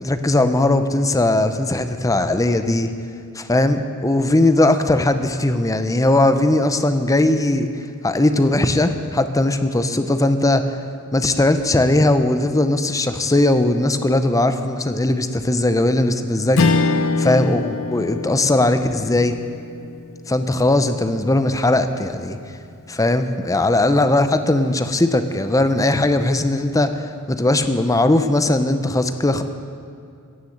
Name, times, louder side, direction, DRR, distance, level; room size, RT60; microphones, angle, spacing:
voice 1, 0.0-2.9 3.4-7.7 8.0-10.7 11.1-16.9 17.2-19.4 20.3-22.4 22.9-29.4, left 2 dB, 15° left, 9 dB, 0.6 m, -19 dB
Strum, 16.5-21.2, left 3 dB, 65° left, 0.7 m, -24 dB
16.0 x 6.8 x 7.9 m, 2.4 s
head